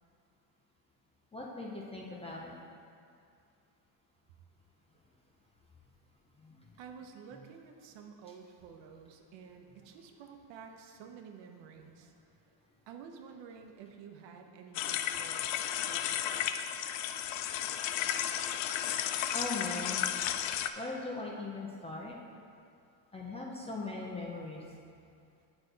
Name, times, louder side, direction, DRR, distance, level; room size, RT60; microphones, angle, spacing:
voice 1, 1.3-2.5 6.4-6.5 19.3-20.1 20.8-22.2 23.1-24.6, left 3 dB, 15° left, -3 dB, 0.4 m, -39 dB
voice 2, 6.8-12.1 12.9-16.2, right 6 dB, 65° right, 4 dB, 0.9 m, -51 dB
sound 1, 14.7-20.7, left 10 dB, 75° left, 0.5 m, -33 dB
8.6 x 6.1 x 3.9 m, 2.4 s
cardioid pair, 170°, 46 cm